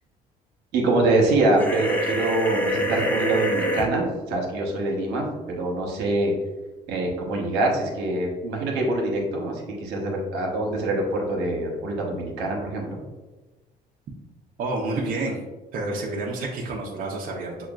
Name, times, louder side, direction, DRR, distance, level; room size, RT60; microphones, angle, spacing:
voice 1, 0.7-6.3 6.9-13.0, right 2 dB, 85° right, -1 dB, 1.0 m, -24 dB
sound 1, 1.6-3.8, equal, 10° left, 0.6 m, -26 dB
voice 2, 14.6-15.4 15.7-17.7, right 2 dB, 55° right, -2 dB, 0.6 m, -29 dB
6.1 x 2.2 x 2.4 m, 1.2 s
cardioid pair, 110°, 17 cm